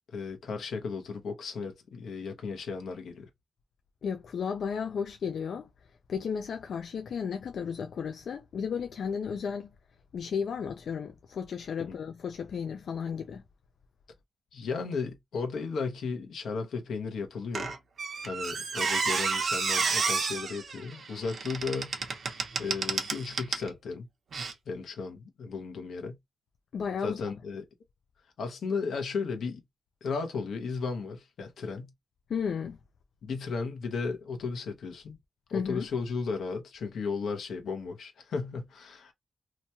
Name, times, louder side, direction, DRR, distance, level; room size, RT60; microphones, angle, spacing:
voice 1, 0.1-3.3 14.5-17.7 18.2-21.9 22.6-24.1 24.7-26.2 27.0-27.6 28.4-29.6 30.0-31.9 33.2-35.2 35.5-39.1, left 4 dB, 90° left, 0.8 m, -35 dB
voice 2, 4.0-5.7 6.1-9.7 10.1-13.4 26.7-27.2 32.3-32.8 35.5-35.9, left 6 dB, 75° left, 0.3 m, -33 dB
Squeak, 17.5-23.7 24.3-24.5, right 4 dB, 60° right, 0.7 m, -31 dB
2.9 x 2.2 x 2.7 m
wide cardioid pair, 115°, 0 cm